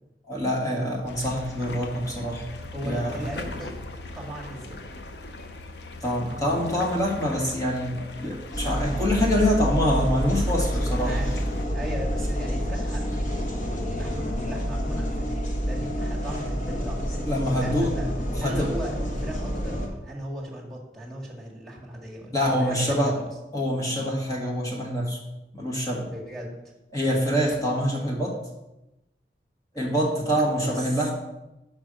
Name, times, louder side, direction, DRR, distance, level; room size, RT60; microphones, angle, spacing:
voice 1, 0.3-2.4 2.8-3.2 6.0-11.2 17.3-17.9 18.4-19.0 22.3-23.2 23.5-25.2 25.5-26.1 26.9-28.4 29.7-31.1, equal, 20° left, -2 dB, 1.5 m, -25 dB
sound 1, 1.1-11.7, left 2 dB, 75° left, 0.7 m, -39 dB
voice 2, 2.7-3.8 4.1-4.9 11.0-11.3 11.7-18.1 18.4-23.3 26.1-26.5 30.3-31.0, right 1 dB, ahead, -6 dB, 1.7 m, -38 dB
sound 2, 8.5-19.9, equal, 45° left, 1.0 m, -28 dB
5.4 x 5.4 x 6.2 m, 0.97 s
head